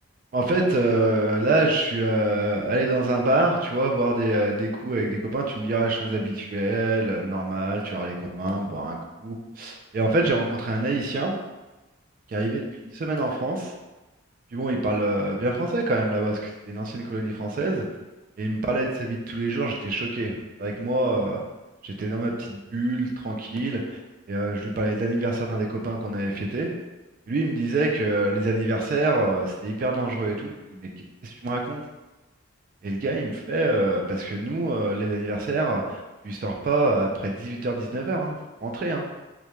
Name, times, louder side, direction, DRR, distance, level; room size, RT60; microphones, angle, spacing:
voice 1, 0.3-11.4 12.3-12.6 12.9-13.7 14.5-17.9 18.4-21.4 21.8-24.0 24.3-26.7 27.3-31.8 32.8-39.0, right 2 dB, 40° right, 1 dB, 0.3 m, -26 dB
2.2 x 2.1 x 2.9 m, 1.1 s
head